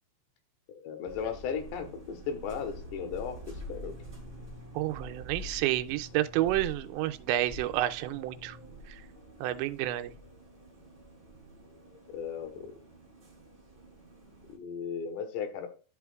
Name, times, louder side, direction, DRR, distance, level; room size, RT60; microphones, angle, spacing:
voice 1, 0.7-4.0 12.1-12.7 14.5-15.7, left 7 dB, 85° left, 3.3 m, -36 dB
bus ride brooklyn bus annoucements stops passengers, 1.0-14.6, equal, 20° right, 1.9 m, -47 dB
voice 2, 4.7-8.6 9.4-10.1, right 14 dB, 90° right, 2.9 m, -30 dB
12.5 x 5.7 x 2.3 m
omnidirectional pair, 5.1 m